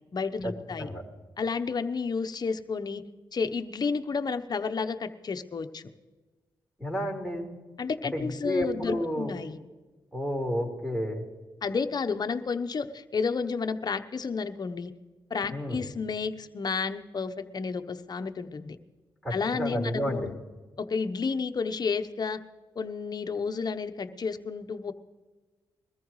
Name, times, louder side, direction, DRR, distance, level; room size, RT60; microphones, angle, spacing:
voice 1, 0.1-0.9 1.4-3.0 3.3-5.8 7.8-9.6 11.6-14.9 15.3-18.8 19.3-20.3 20.8-22.4 22.7-24.9, left 5 dB, 50° left, 9 dB, 0.9 m, -31 dB
voice 2, 6.8-7.5 8.1-9.3 10.1-11.2 15.5-15.8 19.2-20.3, equal, ahead, 0 dB, 4.2 m, -31 dB
22.0 x 14.0 x 3.2 m, 1.3 s
supercardioid pair, 50°, 9 cm